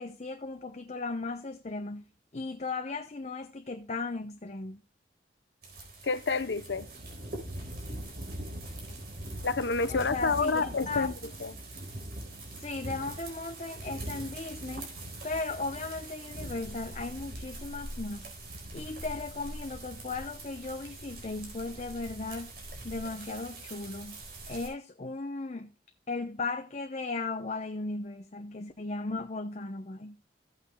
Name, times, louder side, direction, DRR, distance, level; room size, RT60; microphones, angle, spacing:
voice 1, 0.0-2.1 2.3-4.8 9.9-11.1 12.6-14.9 15.2-18.3 18.7-22.5 22.8-24.2 24.5-25.7 26.1-30.2, left 3 dB, 40° left, 0.8 m, -36 dB
sound 1, 5.6-24.7, right 1 dB, 60° right, 4.0 m, -42 dB
voice 2, 6.0-6.9 9.4-11.1 11.4-11.5, left 4 dB, 80° left, 0.8 m, -28 dB
15.5 x 8.4 x 2.3 m
head